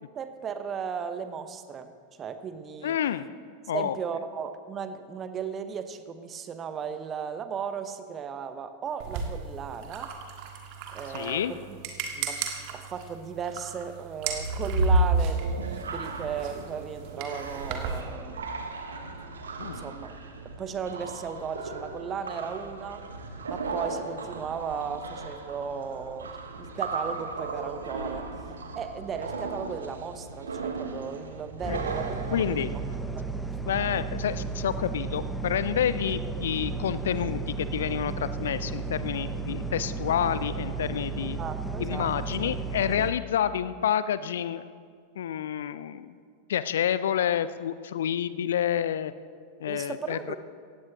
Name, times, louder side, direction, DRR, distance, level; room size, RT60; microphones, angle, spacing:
voice 1, 0.1-1.9 2.2-3.0 3.7-10.1 10.9-11.8 12.1-18.5 19.7-20.2 20.6-23.0 23.5-26.3 26.6-28.3 28.7-32.8 33.1-33.3 41.4-42.1 49.7-50.4, right 6 dB, 25° right, 10 dB, 0.9 m, -36 dB
voice 2, 2.8-3.3 3.7-3.9 11.1-11.5 19.6-19.8 31.7-31.8 32.3-32.7 33.7-41.4 41.8-44.6 45.2-46.2 46.5-49.1 49.6-50.3, left 9 dB, 60° left, 15 dB, 0.4 m, -29 dB
sound 1, 9.0-18.0, right 6 dB, 45° right, 1.6 m, -38 dB
sound 2, 14.2-32.9, right 2 dB, 70° right, 1.2 m, -33 dB
sound 3, 31.6-43.1, right 4 dB, 5° left, 0.7 m, -33 dB
18.0 x 15.5 x 3.0 m, 2.1 s
figure-of-eight pair, 90°, 0 cm